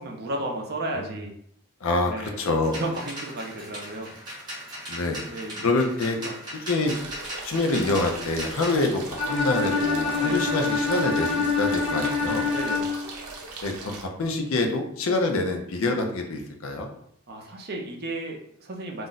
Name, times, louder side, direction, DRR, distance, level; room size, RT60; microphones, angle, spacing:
voice 1, 0.0-1.3 2.1-2.4 2.7-4.1 5.3-5.7 6.2-6.4 10.2-10.4 12.5-12.9 17.3-19.1, right 1 dB, 45° right, 1 dB, 0.5 m, -33 dB
voice 2, 1.8-2.8 4.9-5.2 5.6-6.2 6.7-6.9 7.4-12.5 13.6-16.9, left 2 dB, 65° left, 3 dB, 0.5 m, -26 dB
sound 1, 2.6-8.8, equal, 20° right, 0.9 m, -38 dB
sound 2, 6.8-14.0, right 3 dB, 85° right, 0.6 m, -39 dB
Bowed string instrument, 9.2-13.2, left 4 dB, 25° left, 0.6 m, -26 dB
2.5 x 2.1 x 3.8 m, 0.70 s
head